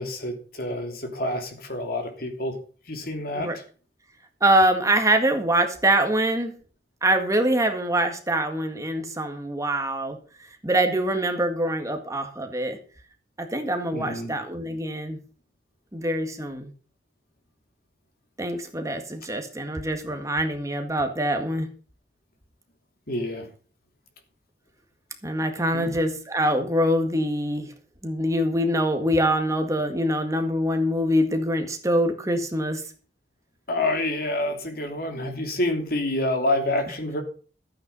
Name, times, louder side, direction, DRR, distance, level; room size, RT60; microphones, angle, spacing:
voice 1, 0.0-2.6 2.9-3.5 13.9-14.3 23.1-23.5 25.7-25.9 33.7-37.2, left 1 dB, 60° left, 5 dB, 3.2 m, -28 dB
voice 2, 4.4-6.5 7.0-10.2 10.6-12.8 13.4-15.2 15.9-16.7 18.4-21.7 25.2-27.7 28.0-32.8, right 1 dB, 20° right, 5 dB, 1.8 m, -24 dB
14.0 x 9.0 x 5.4 m, 0.39 s
head